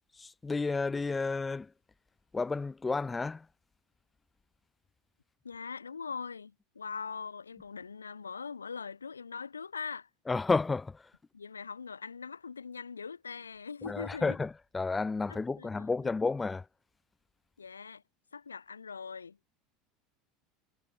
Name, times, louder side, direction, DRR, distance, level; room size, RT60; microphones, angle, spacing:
voice 1, 0.1-1.7 2.3-3.5 10.3-11.1 13.8-16.7, left 4 dB, 15° left, 0.8 m, -31 dB
voice 2, 5.4-10.1 11.3-14.4 15.3-15.7 17.6-18.0 18.3-19.4, left 5 dB, 80° left, 0.6 m, -41 dB
figure-of-eight pair, 75°, 0 cm